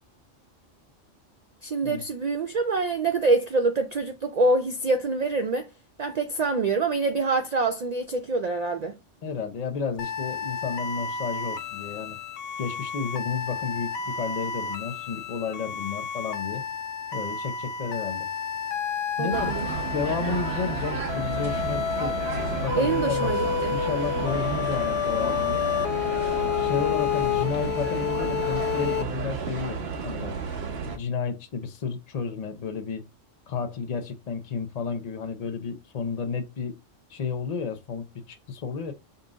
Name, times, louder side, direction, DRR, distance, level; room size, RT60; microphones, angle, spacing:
voice 1, 1.6-5.7 6.0-9.0 19.2-19.7 22.7-23.7, right 3 dB, 85° right, 0.3 m, -25 dB
voice 2, 9.2-12.2 12.6-16.6 17.1-18.3 19.2-19.5 19.9-23.3 23.7-25.6 26.6-30.4 30.9-33.0 33.5-36.8 37.1-38.9, left 5 dB, 40° left, 0.7 m, -32 dB
sound 1, 10.0-29.0, left 8 dB, 70° left, 0.9 m, -30 dB
sound 2, 19.3-31.0, right 5 dB, 60° right, 1.0 m, -32 dB
5.5 x 2.5 x 3.8 m
omnidirectional pair, 1.3 m